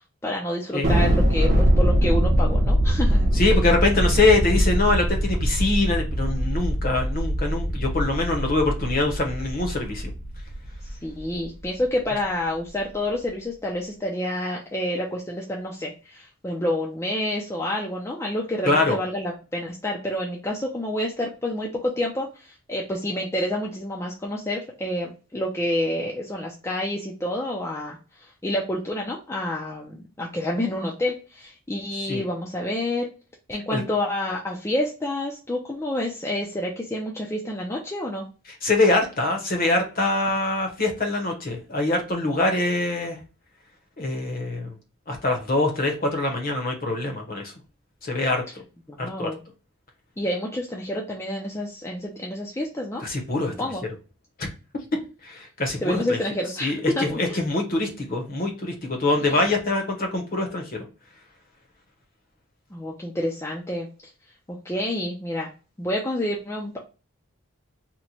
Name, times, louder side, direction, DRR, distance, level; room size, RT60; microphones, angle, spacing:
voice 1, 0.2-3.3 11.0-33.1 33.5-38.3 48.9-49.4 50.2-53.0 53.6-53.8 55.8-57.4 59.2-59.4 62.7-63.9 64.6-65.5 65.8-66.8, left 1 dB, 10° left, -2 dB, 0.4 m, -28 dB
Thunder, 0.8-11.5, equal, 35° right, 0.7 m, -22 dB
voice 2, 3.3-10.1 18.6-19.0 32.1-32.2 33.7-33.8 38.6-43.2 44.0-44.7 45.1-47.5 48.0-48.4 49.0-49.3 53.0-53.5 54.4-54.5 55.2-56.2 56.6-60.8, left 2 dB, 40° left, 3 dB, 0.8 m, -24 dB
2.9 x 2.1 x 3.9 m, 0.33 s
head